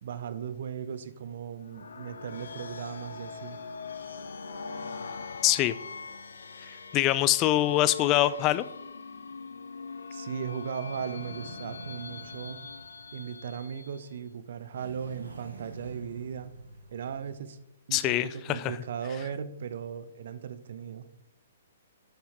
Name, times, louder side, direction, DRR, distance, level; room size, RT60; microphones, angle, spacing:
voice 1, 0.0-3.6 10.1-12.6 13.1-16.5 16.9-17.6 17.9-21.1, right 7 dB, 55° right, 13 dB, 0.8 m, -37 dB
sound 1, 1.6-14.1, left 5 dB, 70° left, 0.8 m, -42 dB
voice 2, 5.4-5.8 6.7-8.7 17.9-18.8, left 15 dB, 30° left, 15 dB, 0.4 m, -24 dB
sound 2, 10.7-13.8 14.7-17.4, right 1 dB, 75° right, 1.6 m, -48 dB
10.5 x 7.1 x 3.6 m, 0.85 s
figure-of-eight pair, 120°, 0 cm